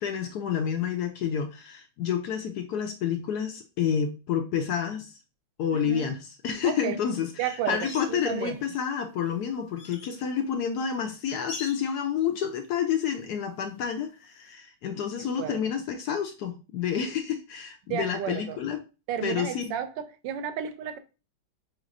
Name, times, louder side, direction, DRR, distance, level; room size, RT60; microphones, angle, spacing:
voice 1, 0.0-5.2 5.6-6.2 6.4-18.8 19.2-19.6, left 8 dB, 75° left, 0.9 m, -29 dB
voice 2, 5.7-6.1 6.6-7.0 7.4-8.6 15.4-15.7 17.9-18.6 19.1-21.0, right 9 dB, 75° right, 1.2 m, -32 dB
sound 1, 7.7-8.8 9.2-10.2 11.5-12.0 14.2-14.3, left 4 dB, 50° left, 0.8 m, -42 dB
5.8 x 3.1 x 2.5 m
omnidirectional pair, 2.2 m